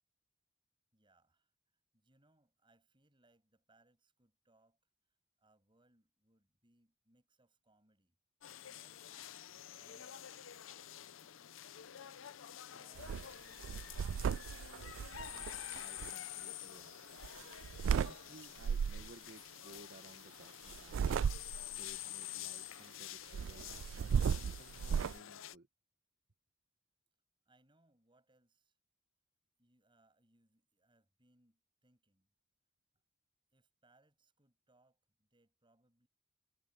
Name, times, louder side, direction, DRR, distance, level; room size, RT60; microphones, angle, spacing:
voice 1, 0.9-1.5 1.9-4.8 5.4-8.2 8.6-10.2 10.8-11.8 12.3-15.0 27.5-28.8 29.6-32.3 33.5-36.1, right 2 dB, 25° right, 7.2 m, -73 dB
sound 1, 8.4-25.5, left 11 dB, 80° left, 0.6 m, -49 dB
sound 2, 13.0-13.3 13.6-16.1 17.2-18.1 18.6-19.1 20.7-21.8 23.3-25.2, right 7 dB, 75° right, 0.3 m, -35 dB
voice 2, 15.7-17.2 17.9-21.1 21.8-23.7 24.0-25.7, right 2 dB, 55° right, 1.4 m, -58 dB
head